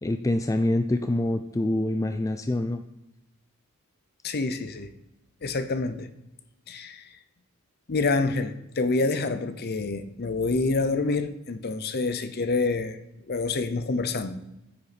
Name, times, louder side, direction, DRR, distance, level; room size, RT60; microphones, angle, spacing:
voice 1, 0.0-2.8, left 1 dB, 15° left, 0.3 m, -25 dB
voice 2, 4.2-4.9 5.4-6.1 6.7-7.0 7.9-13.0 13.3-14.4, left 3 dB, 50° left, 0.7 m, -27 dB
9.3 x 6.7 x 4.3 m
head